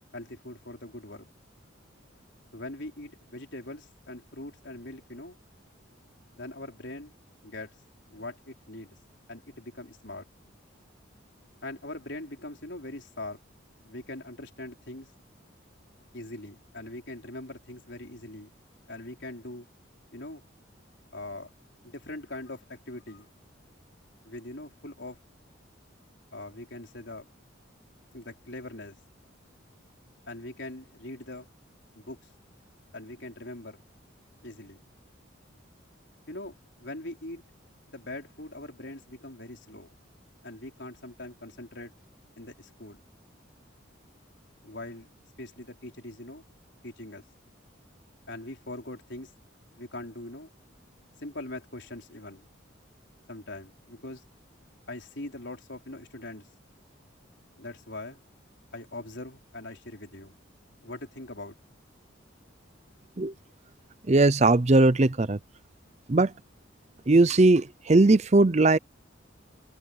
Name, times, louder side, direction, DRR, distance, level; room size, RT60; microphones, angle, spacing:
voice 1, 0.1-1.2 2.5-5.4 6.3-7.1 7.4-7.7 8.1-9.0 9.3-10.3 11.6-13.4 13.8-15.1 16.1-18.5 18.9-19.7 20.1-20.4 21.1-21.5 21.8-23.3 24.2-25.2 26.3-27.3 28.1-29.0 30.3-31.5 31.9-32.2 32.9-33.8 34.4-34.8 36.3-36.5 36.8-37.4 37.9-39.9 40.4-41.9 42.4-43.0 44.6-45.1 45.4-46.5 46.8-47.2 48.3-49.3 49.7-50.5 51.2-52.4 53.3-54.2 54.9-56.5 57.6-58.2 58.7-60.3 60.8-61.6, left 1 dB, 60° left, 4.7 m, -41 dB
voice 2, 64.1-65.4 66.1-66.3 67.1-68.8, right 2 dB, 35° right, 0.6 m, -19 dB
head